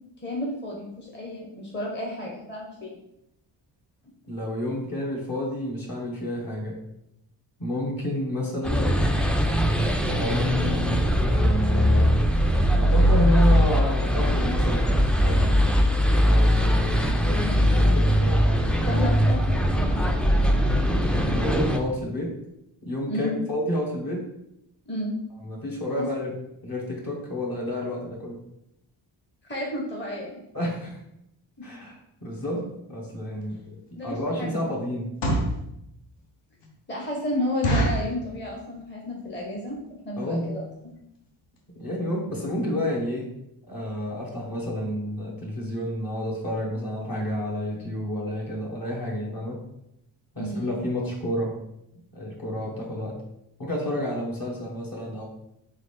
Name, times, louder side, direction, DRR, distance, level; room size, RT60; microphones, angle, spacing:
voice 1, 0.2-3.0 18.9-20.2 23.1-23.4 24.9-25.1 26.0-26.1 29.5-30.4 33.9-34.7 36.9-40.7 50.4-50.7, left 1 dB, 25° left, -3 dB, 1.0 m, -32 dB
voice 2, 4.3-6.8 7.6-9.0 10.0-10.9 11.2-12.1 12.7-15.5 16.2-17.1 17.6-18.6 21.3-22.3 22.8-24.3 25.4-26.3 26.6-28.4 30.5-31.0 31.6-35.2 40.2-40.6 41.7-43.3 43.7-49.6 50.3-51.5 52.1-53.1 53.6-55.3, equal, 45° left, -2 dB, 1.5 m, -30 dB
sound 1, 8.6-21.8, equal, 5° left, 0.3 m, -21 dB
sound 2, 33.4-33.6 34.1-34.3 35.0-35.6 36.2-36.3 36.6-36.7 37.0-37.1 37.6-38.1 38.7-39.0 39.3-39.4 39.6-39.9 40.4-40.5 40.7-40.9 41.3-41.4 41.6-41.7, right 1 dB, 60° left, 1.1 m, -25 dB
3.8 x 3.4 x 3.4 m, 0.82 s
cardioid pair, 75°, 47 cm